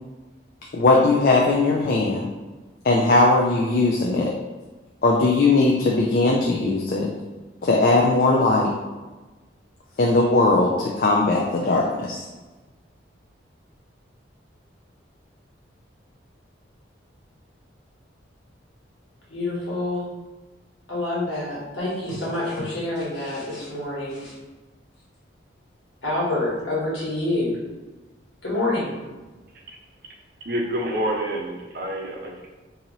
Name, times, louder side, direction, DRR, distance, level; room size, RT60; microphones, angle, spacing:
voice 1, 0.7-2.3 2.8-4.3 5.0-7.1 7.6-8.7 10.0-12.2, left 2 dB, 50° left, -2 dB, 0.4 m, -19 dB
voice 2, 19.3-20.1 20.9-24.3 26.0-27.6 28.4-29.0, left 2 dB, 75° left, -6 dB, 1.5 m, -27 dB
voice 3, 30.4-32.5, right 1 dB, 50° right, 0 dB, 0.5 m, -28 dB
2.9 x 2.7 x 3.9 m, 1.2 s
head